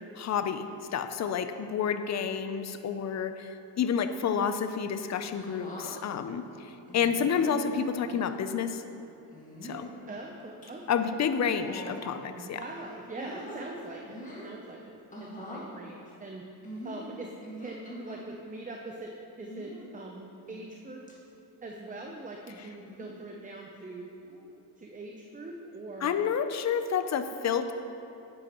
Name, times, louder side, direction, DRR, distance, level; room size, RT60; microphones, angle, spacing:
voice 1, 0.2-8.8 9.6-9.9 10.9-12.6 26.0-27.7, left 7 dB, 40° left, 9 dB, 0.5 m, -29 dB
sound 1, 5.3-5.9 6.9-7.4 8.0-8.3 9.3-9.9 10.4-10.7 11.4-12.3 12.7-13.6 14.0-14.5 15.1-15.7 16.6-18.2 19.4-19.9 20.5-20.8 21.1-21.2 22.8-23.2 24.2-24.5, equal, 20° left, 1.9 m, -44 dB
voice 2, 10.1-11.2 12.4-16.4 16.8-17.3 17.6-21.0 21.6-24.1 24.8-26.2, right 2 dB, 20° right, 1 dB, 0.6 m, -43 dB
10.5 x 8.8 x 3.0 m, 2.8 s
cardioid pair, 105°, 42 cm